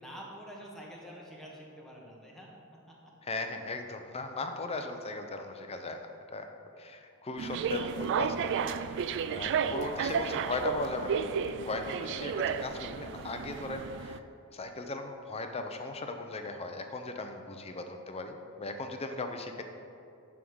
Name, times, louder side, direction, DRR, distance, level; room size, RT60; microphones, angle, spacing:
voice 1, 0.0-2.5 2.9-3.0 17.7-17.8, equal, ahead, -3 dB, 1.3 m, -47 dB
voice 2, 3.2-6.5 6.8-8.5 8.8-14.2 14.5-19.6, left 2 dB, 25° left, 5 dB, 0.6 m, -38 dB
sound 1, 7.4-14.2, right 7 dB, 55° right, 0.3 m, -33 dB
9.9 x 3.6 x 6.2 m, 2.6 s
head